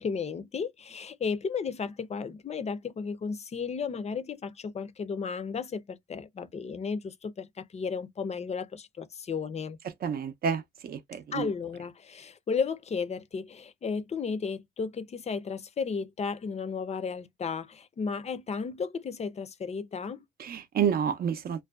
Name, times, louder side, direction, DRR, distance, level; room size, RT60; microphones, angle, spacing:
voice 1, 0.0-9.8 11.3-20.2, left 5 dB, 35° left, 0.5 m, -34 dB
voice 2, 10.0-11.5 20.4-21.6, right 7 dB, 50° right, 0.5 m, -29 dB
2.6 x 2.1 x 2.3 m
cardioid pair, 90°, 20 cm